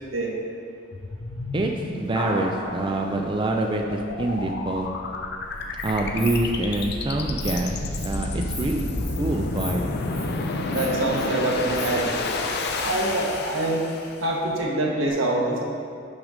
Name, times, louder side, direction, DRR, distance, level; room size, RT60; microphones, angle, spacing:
sound 1, 0.9-14.3, left 2 dB, 55° left, 0.6 m, -30 dB
voice 1, 1.5-4.9 5.8-7.8 8.0-8.8 9.2-9.8, right 2 dB, 25° right, 2 dB, 0.4 m, -26 dB
sound 2, 2.2-4.9, left 1 dB, 80° left, 2.0 m, -35 dB
Insect, 5.6-5.9 6.2-6.4 6.7-6.8 7.2-7.5 7.9-8.1 8.5-8.7 9.0-9.2 9.5-9.7 10.0-10.2 10.7-11.2 11.6-12.8, left 1 dB, 5° left, 1.8 m, -38 dB
voice 2, 10.7-12.2 12.7-13.8 14.2-15.6, right 2 dB, 85° right, -2 dB, 1.3 m, -25 dB
6.5 x 6.3 x 5.0 m, 2.4 s
head